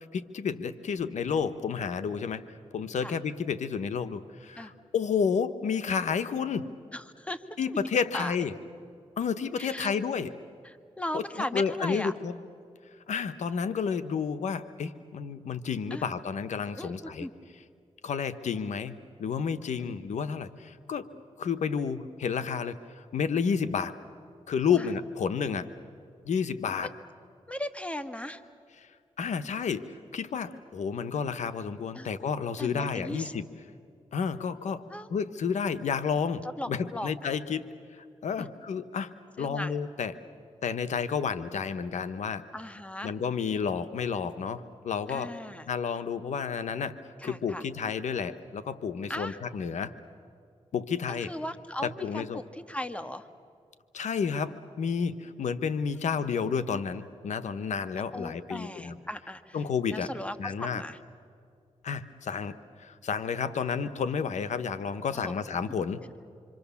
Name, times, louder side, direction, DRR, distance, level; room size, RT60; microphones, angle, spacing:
voice 1, 0.1-2.5 2.7-6.7 7.6-8.5 9.2-10.3 11.1-12.4 13.1-17.3 18.0-21.1 21.4-23.9 24.5-25.7 26.2-26.9 28.8-28.9 29.2-33.5 34.1-40.1 40.6-42.4 43.0-45.3 45.7-49.9 50.7-51.3 51.8-52.4 53.9-59.0 59.5-60.1 60.4-60.8 61.8-66.0, left 6 dB, 80° left, 11 dB, 1.0 m, -31 dB
voice 2, 6.9-7.8 8.1-8.4 9.6-9.9 10.6-12.1 15.9-16.1 16.8-17.3 19.8-19.9 24.7-24.9 27.5-28.4 31.9-32.1 32.6-33.3 34.9-35.1 36.4-37.1 38.4-38.5 39.4-39.7 42.5-43.1 45.1-45.7 47.2-47.6 49.1-49.4 51.1-53.3 58.1-59.6 59.9-61.0 65.1-65.3, left 1 dB, 10° left, 9 dB, 1.7 m, -37 dB
26.5 x 26.0 x 7.1 m, 2.3 s
cardioid pair, 65°, 12 cm